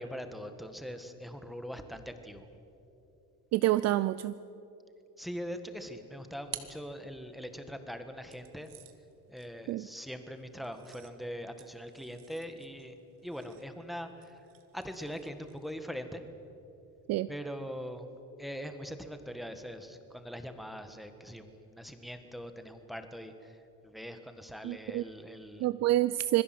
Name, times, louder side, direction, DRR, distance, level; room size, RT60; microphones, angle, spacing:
voice 1, 0.0-2.4 5.2-8.7 9.3-13.0 13.2-14.4 14.7-16.2 17.3-18.1 18.4-23.6 23.8-25.7, equal, ahead, 7 dB, 1.5 m, -42 dB
voice 2, 3.5-4.3 9.7-9.9 17.1-17.3 24.6-25.0 25.6-26.4, right 15 dB, 45° right, 15 dB, 0.5 m, -27 dB
sound 1, 5.8-7.6 8.3-15.9, right 13 dB, 65° right, 1.8 m, -52 dB
26.0 x 21.0 x 7.8 m, 2.8 s
cardioid pair, 160°, 36 cm